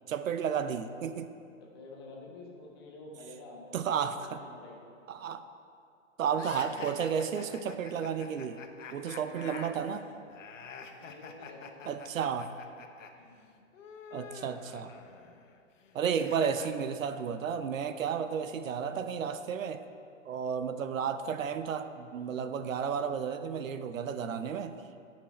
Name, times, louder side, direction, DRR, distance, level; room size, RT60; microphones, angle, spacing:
voice 1, 0.1-1.3 3.7-4.4 5.1-5.4 6.2-8.6 8.9-10.0 11.9-12.5 14.1-14.9 15.9-19.8 20.2-24.8, right 7 dB, 80° right, 10 dB, 0.8 m, -32 dB
voice 2, 1.6-4.1 4.3-4.8 9.2-10.0 10.9-11.7 13.1-13.4, left 2 dB, 20° left, -1 dB, 0.9 m, -49 dB
sound 1, 6.3-13.1 13.4-16.7, left 6 dB, 70° left, 1.1 m, -47 dB
16.0 x 6.1 x 4.3 m, 2.4 s
hypercardioid pair, 175°, 39 cm